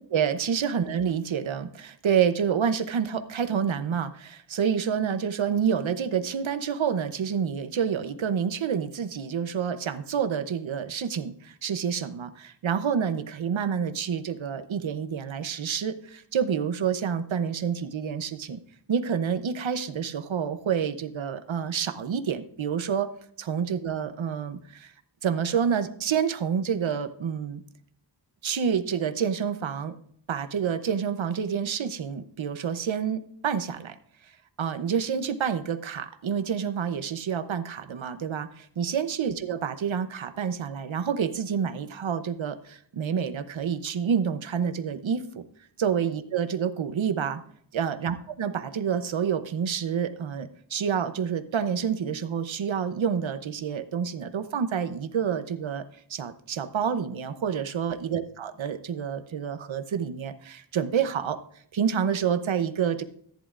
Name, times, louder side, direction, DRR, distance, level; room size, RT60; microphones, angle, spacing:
voice 1, 0.1-18.6 18.9-23.1 23.4-24.9 25.2-27.6 28.4-30.0 30.3-34.0 34.6-45.5 45.8-47.4 47.7-55.8 56.1-61.4 61.7-63.0, right 7 dB, 85° right, 10 dB, 0.9 m, -28 dB
14.5 x 10.5 x 2.5 m, 0.64 s
wide cardioid pair, 100°, 45 cm